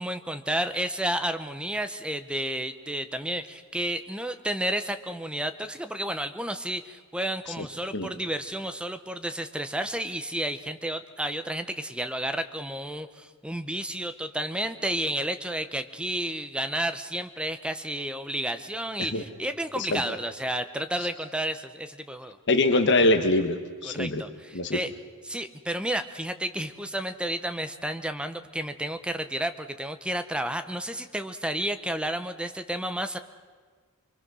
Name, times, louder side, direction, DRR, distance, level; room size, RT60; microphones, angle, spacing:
voice 1, 0.0-22.4 23.8-24.9 25.2-33.2, right 1 dB, 5° right, 9 dB, 0.8 m, -31 dB
voice 2, 22.5-24.2 24.5-24.8, left 2 dB, 55° left, 6 dB, 1.3 m, -23 dB
25.5 x 23.5 x 6.2 m, 1.6 s
head